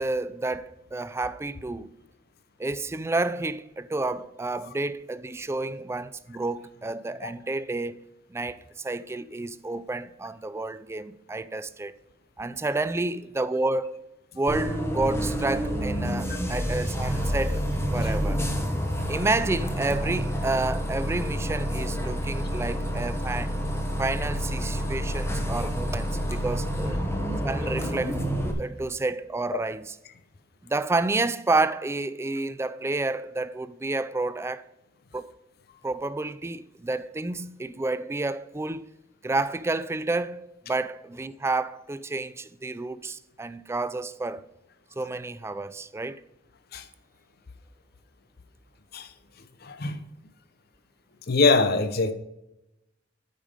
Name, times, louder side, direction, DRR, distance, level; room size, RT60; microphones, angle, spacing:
voice 1, 0.0-1.9 2.6-8.0 8.3-12.0 12.4-14.0 14.3-17.6 17.9-18.4 19.1-23.5 24.0-27.0 27.4-28.2 28.6-30.0 30.6-34.6 35.1-35.3 35.8-38.9 39.2-44.4 45.0-46.2, right 2 dB, 15° right, 0.4 m, -30 dB
Bus, 14.5-28.5, equal, 15° left, 1.2 m, -28 dB
voice 2, 49.6-50.0 51.3-52.1, left 3 dB, 55° left, 0.7 m, -23 dB
8.8 x 5.3 x 5.0 m
head